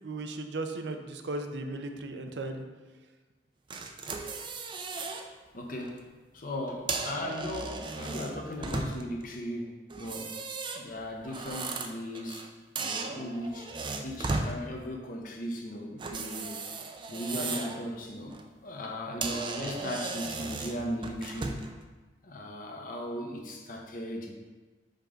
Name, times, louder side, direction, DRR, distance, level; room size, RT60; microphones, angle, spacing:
voice 1, 0.0-2.6, right 2 dB, 70° right, 6 dB, 0.6 m, -36 dB
sound 1, 3.7-5.2 5.7-5.9 6.7-9.2 9.9-12.5 12.8-14.5 16.0-17.8 18.2-18.4 18.9-19.0 19.2-21.7, right 3 dB, 30° right, 0.4 m, -36 dB
voice 2, 5.5-6.1 6.3-10.3 10.7-12.5 12.8-13.7 14.0-16.5 17.1-18.3 18.6-21.6 22.2-24.3, left 1 dB, 50° left, 1 dB, 0.9 m, -37 dB
5.2 x 5.2 x 3.8 m, 1.3 s
head